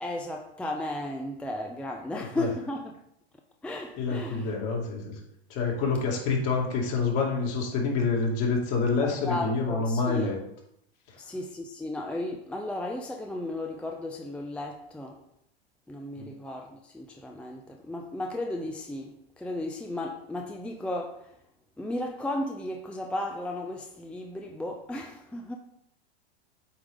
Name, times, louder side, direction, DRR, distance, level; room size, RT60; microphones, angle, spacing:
voice 1, 0.0-2.9 3.6-4.5 9.0-10.3 11.2-15.2 15.9-21.3 21.8-25.6, left 1 dB, 5° left, 0.5 m, -35 dB
voice 2, 2.1-2.5 4.0-5.1 5.5-10.4 16.1-16.3, left 4 dB, 45° left, 2.5 m, -27 dB
8.2 x 4.8 x 3.7 m
hypercardioid pair, 105°, 32 cm